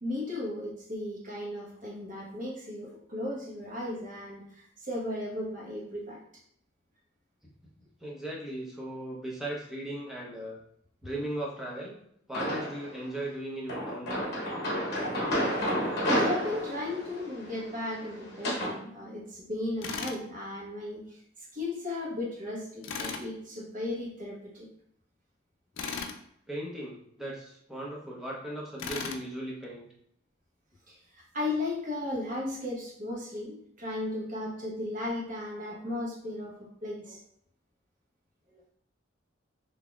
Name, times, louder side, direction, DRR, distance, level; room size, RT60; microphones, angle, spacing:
voice 1, 0.0-6.2 15.2-15.3 16.0-21.2 21.5-24.7 30.9-37.2 38.5-38.6, left 2 dB, 45° right, -4 dB, 1.1 m, -36 dB
voice 2, 8.0-10.6 11.0-12.0 12.3-14.3 26.5-29.9, right 1 dB, ahead, -4 dB, 0.8 m, -37 dB
sound 1, 12.3-13.0 13.7-18.8, equal, 55° left, 0.9 m, -31 dB
Tools, 19.8-20.2 22.8-23.3 25.8-26.2 28.8-29.2, left 5 dB, 80° left, 0.4 m, -36 dB
4.0 x 2.7 x 2.3 m, 0.70 s
head